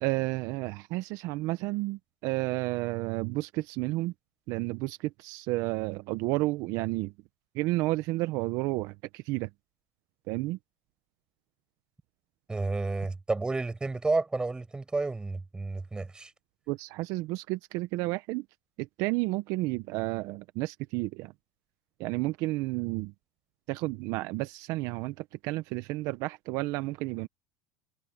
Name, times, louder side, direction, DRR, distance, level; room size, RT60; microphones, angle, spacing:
voice 1, 0.0-4.1 4.5-7.1 7.5-9.5 10.3-10.6 16.7-18.4 18.8-21.3 22.0-23.1 23.7-25.1 25.4-27.3, right 20 dB, 65° right, 1.0 m, -31 dB
voice 2, 12.5-16.3, right 3 dB, 15° right, 7.8 m, -31 dB
supercardioid pair, 105°, 6 cm